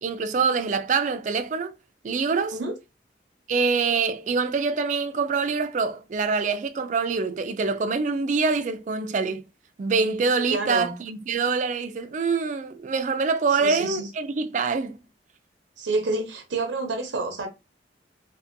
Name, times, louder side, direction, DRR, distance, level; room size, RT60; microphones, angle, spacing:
voice 1, 0.0-1.7 2.0-2.6 3.5-9.4 9.8-15.0, right 4 dB, 40° right, 0.3 m, -25 dB
voice 2, 10.5-10.9 13.6-14.1 15.8-17.5, right 3 dB, 90° right, 0.6 m, -28 dB
2.6 x 2.5 x 2.5 m
head